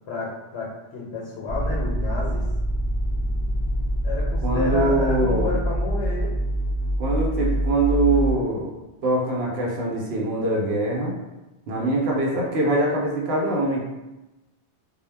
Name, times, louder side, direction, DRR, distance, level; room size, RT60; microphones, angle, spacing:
voice 1, 0.1-2.4 4.0-6.3, left 2 dB, 85° left, -3 dB, 0.9 m, -30 dB
sound 1, 1.5-8.3, right 1 dB, 55° left, 0.6 m, -25 dB
voice 2, 4.4-5.5 7.0-8.7 9.0-11.1 11.7-13.9, right 2 dB, 70° right, -2 dB, 0.8 m, -23 dB
2.1 x 2.0 x 3.2 m, 1.0 s
omnidirectional pair, 1.1 m